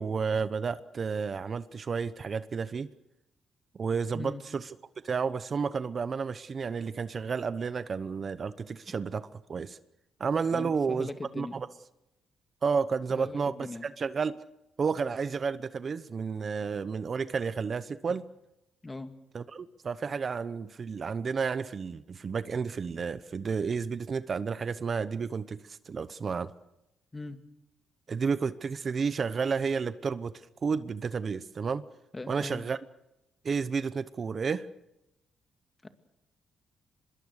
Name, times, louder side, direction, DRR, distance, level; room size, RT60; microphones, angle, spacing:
voice 1, 0.0-2.9 3.7-4.7 5.0-9.8 10.2-11.1 11.4-11.7 12.6-14.4 14.8-18.2 19.3-26.5 28.1-31.8 32.3-32.8 33.4-34.7, right 5 dB, 45° right, 14 dB, 0.9 m, -31 dB
voice 2, 10.5-11.6 13.1-13.9 18.8-19.1 27.1-27.4 32.1-32.6 35.8-35.9, left 2 dB, 20° left, 7 dB, 2.3 m, -40 dB
25.0 x 21.5 x 6.6 m, 0.91 s
cardioid pair, 90°, 0 cm